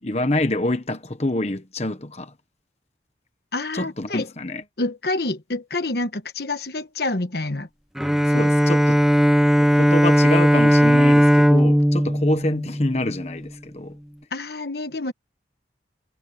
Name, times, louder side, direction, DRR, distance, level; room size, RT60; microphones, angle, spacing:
voice 1, 0.0-2.3 3.7-4.6 8.3-9.0 9.6-14.0, left 1 dB, 35° left, 1.2 m, -26 dB
voice 2, 3.5-4.3 4.8-7.7 14.3-15.1, left 2 dB, 60° left, 1.3 m, -27 dB
Bowed string instrument, 8.0-13.4, equal, ahead, 0.8 m, -17 dB
head